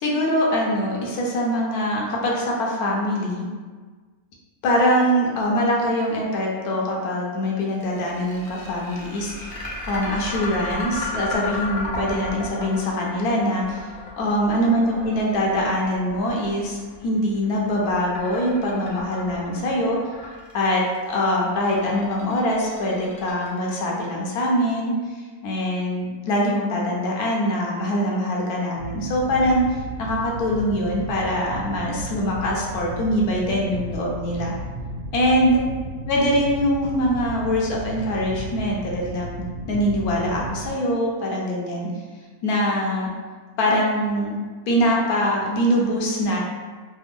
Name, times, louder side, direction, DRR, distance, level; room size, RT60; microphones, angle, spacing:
voice 1, 0.0-3.5 4.6-9.6 9.9-20.0 20.5-25.0 25.4-34.5 35.1-35.6 36.1-39.4 39.7-41.9 42.4-43.1 43.6-44.4 44.7-46.4, equal, 80° left, -2 dB, 1.1 m, -23 dB
sound 1, 7.8-23.9, left 2 dB, 45° left, 0.7 m, -34 dB
sound 2, 28.8-40.7, right 1 dB, 90° right, 1.2 m, -34 dB
3.3 x 2.1 x 3.5 m, 1.4 s
omnidirectional pair, 1.6 m